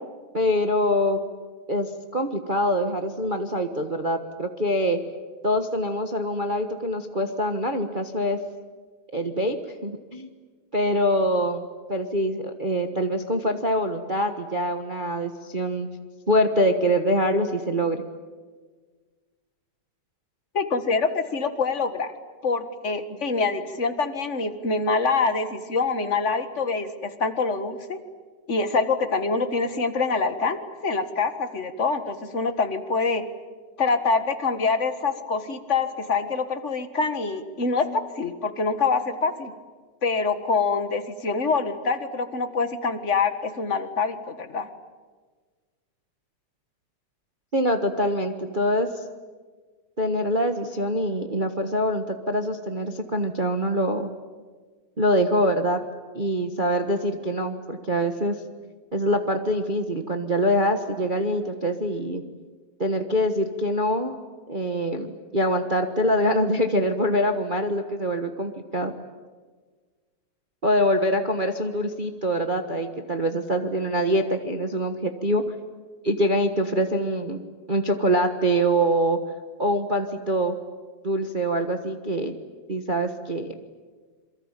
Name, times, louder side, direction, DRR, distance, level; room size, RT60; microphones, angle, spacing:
voice 1, 0.3-1.2 1.7-5.0 5.4-8.4 9.1-9.6 9.8-10.3 10.7-15.9 16.3-18.0 47.5-48.9 50.0-54.1 55.0-55.8 56.1-58.4 58.9-62.2 62.8-64.1 64.5-68.9 70.6-75.4 76.0-77.4 77.7-79.2 79.6-80.6 81.0-82.3 82.7-83.5, equal, 55° right, 6 dB, 0.5 m, -24 dB
voice 2, 20.5-22.1 22.4-28.0 28.5-33.2 33.8-39.5 40.0-44.7, left 4 dB, 30° left, 9 dB, 1.4 m, -25 dB
27.5 x 23.5 x 9.1 m, 1.5 s
omnidirectional pair, 3.4 m